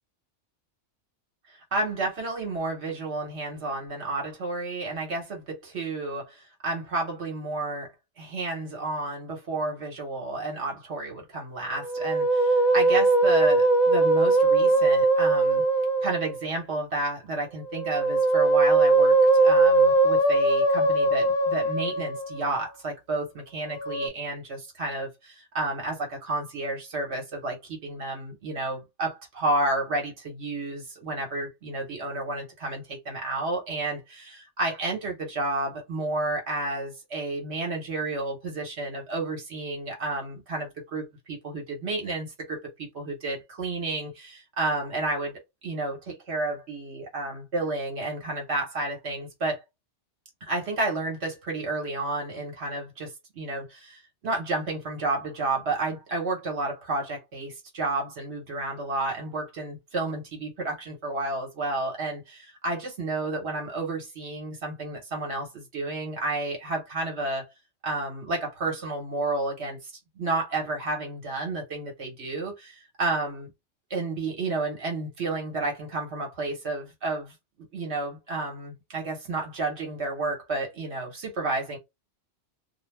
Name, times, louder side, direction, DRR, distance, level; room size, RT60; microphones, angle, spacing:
voice 1, 1.5-7.9 8.2-15.6 16.0-49.6 50.4-67.4 67.8-73.5 73.9-77.3 77.7-81.8, right 2 dB, 70° right, 1.2 m, -31 dB
Musical instrument, 11.8-16.4 17.7-22.5 23.7-24.1, right 2 dB, 65° left, 0.4 m, -21 dB
2.4 x 2.2 x 3.2 m
omnidirectional pair, 1.2 m